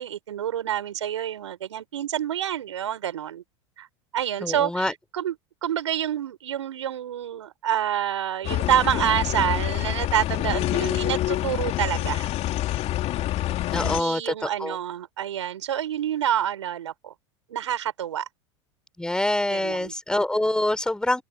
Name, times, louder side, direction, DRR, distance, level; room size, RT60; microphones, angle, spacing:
voice 1, 0.0-3.4 3.8-3.9 4.1-5.3 5.6-12.3 12.7-12.8 13.8-17.1 17.5-18.3 19.5-19.9, right 10 dB, 75° right, 5.6 m, -27 dB
voice 2, 4.4-4.9 13.7-14.8 19.0-21.2, left 1 dB, 5° left, 4.5 m, -25 dB
sound 1, 8.4-14.0, left 14 dB, 45° left, 2.6 m, -26 dB
open air
hypercardioid pair, 85°, 15 cm